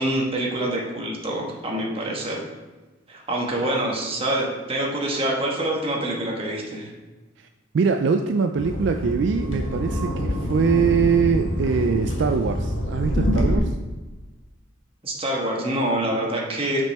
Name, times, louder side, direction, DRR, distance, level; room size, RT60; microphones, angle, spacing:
voice 1, 0.0-2.4 3.1-6.9 15.0-16.8, right 1 dB, 30° right, -2 dB, 1.3 m, -26 dB
voice 2, 7.7-13.7, right 5 dB, 65° right, 6 dB, 0.4 m, -23 dB
sound 1, 8.5-13.6, equal, 85° left, 1.4 m, -26 dB
6.3 x 5.2 x 4.3 m, 1.2 s
head